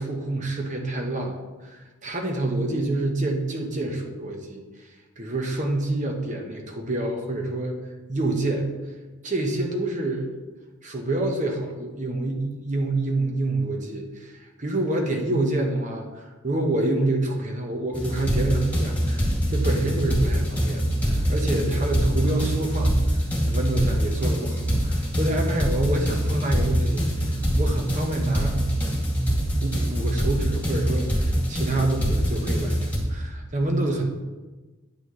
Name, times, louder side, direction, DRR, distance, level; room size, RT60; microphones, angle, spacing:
voice 1, 0.0-4.9 5.2-7.8 8.1-8.7 9.2-10.3 10.8-28.6 28.9-29.0 29.6-34.1, right 2 dB, 40° right, 2 dB, 1.0 m, -27 dB
sound 1, 17.9-33.0, equal, 10° left, 2.3 m, -24 dB
9.9 x 9.0 x 3.1 m, 1.2 s
head